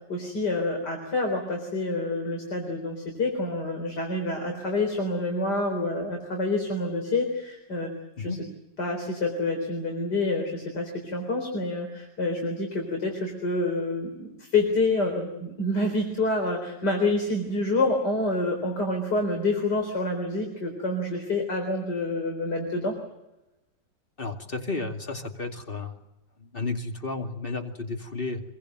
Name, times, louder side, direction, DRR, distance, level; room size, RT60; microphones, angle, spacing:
voice 1, 0.1-7.9 8.2-8.4 8.8-23.0, left 2 dB, 65° left, 3 dB, 4.7 m, -27 dB
voice 2, 24.2-26.0 26.4-28.4, left 3 dB, 30° left, 4 dB, 2.5 m, -32 dB
26.0 x 22.5 x 7.9 m, 0.94 s
omnidirectional pair, 1.9 m